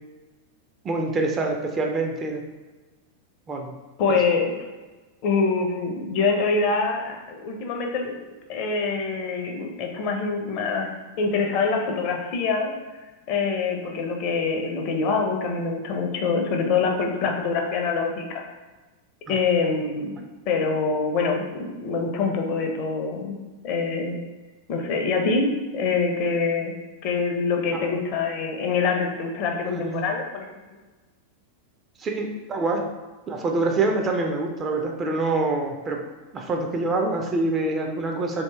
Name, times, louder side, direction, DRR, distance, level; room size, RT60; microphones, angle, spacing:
voice 1, 0.8-2.4 3.5-3.7 19.3-19.4 27.7-27.9 29.7-30.0 32.0-32.9 33.3-36.0 36.3-38.4, right 2 dB, 25° right, 3 dB, 0.4 m, -26 dB
voice 2, 4.0-4.6 5.2-8.1 8.5-10.9 11.2-12.7 13.3-18.4 19.3-20.1 20.5-23.4 23.6-24.2 24.7-26.7 27.0-30.5, left 4 dB, 40° left, 2 dB, 0.5 m, -25 dB
2.7 x 2.7 x 3.4 m, 1.2 s
figure-of-eight pair, 90°, 0 cm